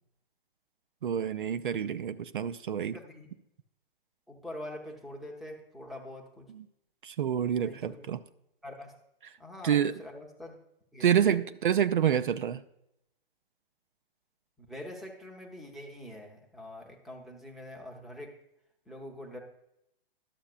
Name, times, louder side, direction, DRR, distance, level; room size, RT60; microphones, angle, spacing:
voice 1, 1.0-3.0 6.5-6.6 7.0-8.2 9.6-9.9 11.0-12.6, right 9 dB, 60° right, 12 dB, 0.5 m, -27 dB
voice 2, 2.9-3.3 4.3-6.5 7.6-8.1 8.6-9.0 9.4-10.6 10.9-11.1 14.6-18.3 18.9-19.4, left 1 dB, ahead, 0 dB, 0.6 m, -44 dB
11.5 x 7.1 x 2.4 m, 0.80 s
figure-of-eight pair, 120°, 29 cm